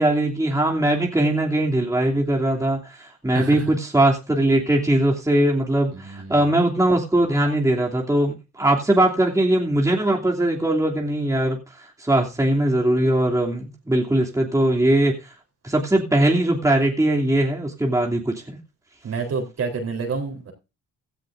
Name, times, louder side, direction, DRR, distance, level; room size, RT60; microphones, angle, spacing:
voice 1, 0.0-11.6 12.0-15.1 15.6-18.6, right 1 dB, 10° right, -1 dB, 2.9 m, -20 dB
voice 2, 5.9-6.5 19.0-20.5, right 5 dB, 55° right, 3 dB, 3.9 m, -28 dB
16.5 x 13.0 x 2.6 m, 0.29 s
cardioid pair, 90°, 30 cm